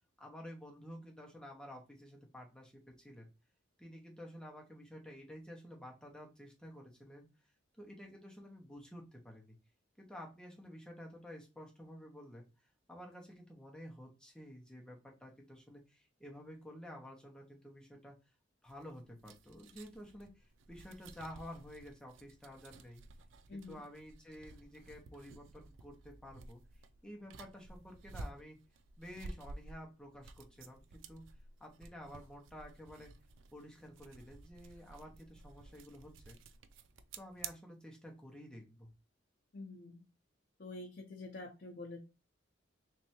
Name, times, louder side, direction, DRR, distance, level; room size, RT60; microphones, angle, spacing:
voice 1, 0.2-3.3 3.8-7.3 7.8-9.6 10.0-12.5 12.9-18.1 18.6-23.0 23.5-26.6 27.0-28.6 29.0-31.2 31.6-33.1 33.5-36.4 37.2-38.9, equal, 5° left, 0 dB, 0.9 m, -51 dB
sound 1, 18.7-37.5, right 3 dB, 80° right, 0.5 m, -53 dB
voice 2, 23.5-23.8 39.5-40.0 40.6-42.0, left 2 dB, 50° left, 1 dB, 0.6 m, -47 dB
3.4 x 3.2 x 2.9 m, 0.28 s
head